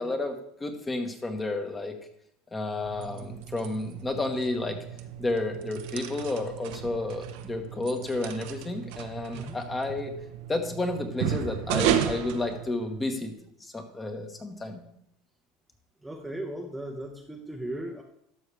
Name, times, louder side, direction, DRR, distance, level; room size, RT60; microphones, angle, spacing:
voice 1, 0.0-1.9 2.5-4.8 5.2-10.1 10.5-13.3 13.6-14.8, left 2 dB, 15° left, 5 dB, 1.2 m, -31 dB
sound 1, 2.8-13.2, right 10 dB, 75° right, 0.7 m, -34 dB
voice 2, 16.0-18.0, right 1 dB, 5° right, 0 dB, 0.8 m, -37 dB
12.0 x 6.3 x 3.3 m, 0.72 s
supercardioid pair, 120°, 0 cm